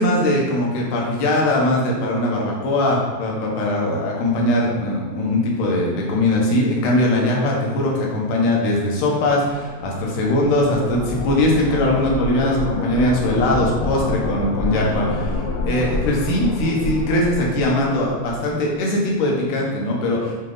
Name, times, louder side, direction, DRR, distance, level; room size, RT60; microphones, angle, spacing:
voice 1, 0.0-20.4, left 1 dB, 90° left, -2 dB, 2.7 m, -20 dB
sound 1, 9.5-18.5, left 2 dB, 75° left, 1.8 m, -27 dB
7.2 x 3.3 x 3.9 m, 1.5 s
omnidirectional pair, 3.5 m